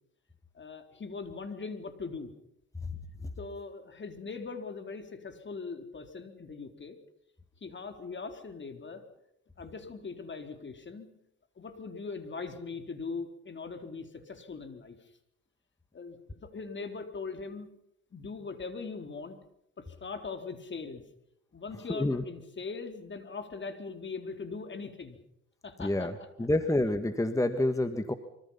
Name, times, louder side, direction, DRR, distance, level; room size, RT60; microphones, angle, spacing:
voice 1, 0.5-2.3 3.4-7.0 7.6-9.0 9.6-11.1 11.6-15.1 15.9-17.7 18.1-19.4 19.8-21.0 21.5-25.2 25.6-26.3, left 4 dB, 40° left, 7 dB, 4.0 m, -40 dB
voice 2, 21.9-22.2 25.8-26.1 26.4-28.1, left 1 dB, 10° left, 9 dB, 1.6 m, -28 dB
25.5 x 25.0 x 5.7 m, 0.79 s
cardioid pair, 90°, 30 cm